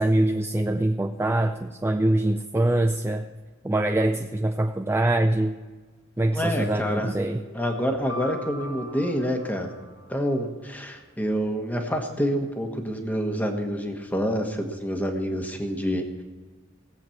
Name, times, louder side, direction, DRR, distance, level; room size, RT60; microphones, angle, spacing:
voice 1, 0.0-3.3 3.6-5.6 6.2-7.4, right 1 dB, 10° right, 7 dB, 0.3 m, -24 dB
voice 2, 6.3-7.1 7.5-9.7 10.1-16.0, equal, 10° left, 3 dB, 1.3 m, -27 dB
sound 1, 7.4-10.5, equal, 85° left, 3.2 m, -41 dB
17.0 x 7.9 x 5.9 m, 1.4 s
head